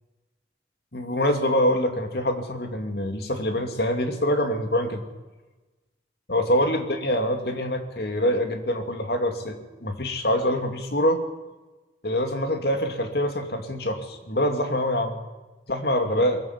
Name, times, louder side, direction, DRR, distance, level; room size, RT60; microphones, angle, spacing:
voice 1, 0.9-5.0 6.3-11.2 12.0-15.2 15.7-16.4, equal, 60° left, 6 dB, 2.6 m, -25 dB
21.5 x 15.5 x 8.2 m, 1.2 s
head